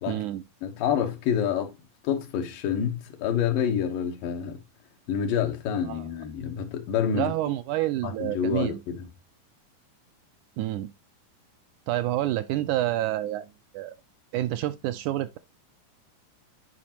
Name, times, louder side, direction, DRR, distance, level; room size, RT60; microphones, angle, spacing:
voice 1, 0.1-0.4 5.8-6.1 7.1-8.8 10.6-10.9 11.9-13.5 13.7-14.0 14.3-15.4, right 14 dB, 80° right, 1.9 m, -28 dB
voice 2, 0.6-1.7 2.0-4.6 5.1-7.3 8.0-9.1, left 8 dB, 85° left, 2.9 m, -27 dB
11.0 x 5.1 x 2.9 m
omnidirectional pair, 3.8 m